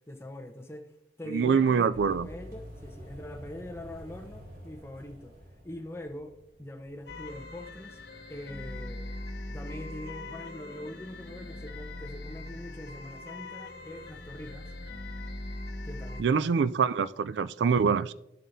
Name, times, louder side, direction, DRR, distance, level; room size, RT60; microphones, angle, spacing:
voice 1, 0.1-0.9 1.2-5.4 5.6-8.0 8.3-9.1 9.5-14.7 15.8-17.0, left 1 dB, 15° left, 0.9 m, -43 dB
voice 2, 1.3-2.3 16.2-18.1, right 6 dB, 80° right, 0.4 m, -25 dB
sound 1, 1.9-8.9, equal, 60° right, 4.1 m, -49 dB
sound 2, 7.1-16.2, left 2 dB, 75° left, 1.0 m, -41 dB
14.0 x 7.4 x 2.7 m
head